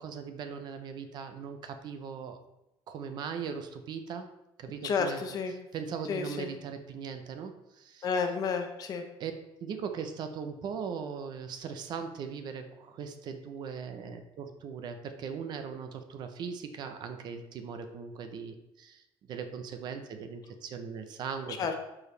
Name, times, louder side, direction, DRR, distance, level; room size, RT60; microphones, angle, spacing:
voice 1, 0.0-2.4 2.9-4.3 4.6-5.2 5.5-8.1 9.2-9.3 9.6-21.6, right 6 dB, 45° right, 7 dB, 0.7 m, -39 dB
voice 2, 4.8-5.5 6.1-6.5 8.0-9.0 21.6-21.7, left 5 dB, 40° left, 6 dB, 0.8 m, -31 dB
12.0 x 4.8 x 3.3 m, 0.89 s
cardioid pair, 175°, 10 cm